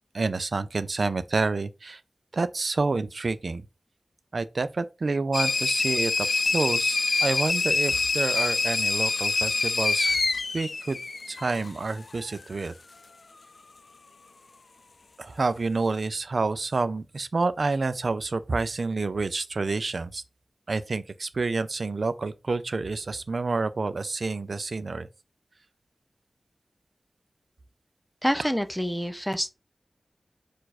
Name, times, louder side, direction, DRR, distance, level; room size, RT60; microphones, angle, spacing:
voice 1, 0.1-2.0 2.3-3.6 4.3-6.3 6.5-10.1 10.5-11.0 11.3-12.7 15.2-20.2 20.7-25.1, right 3 dB, 65° right, 0.4 m, -28 dB
sound 1, 5.3-11.7, left 3 dB, 65° left, 0.4 m, -25 dB
voice 2, 28.2-29.5, equal, ahead, 0.6 m, -27 dB
4.6 x 2.5 x 4.1 m
wide cardioid pair, 70°, 0 cm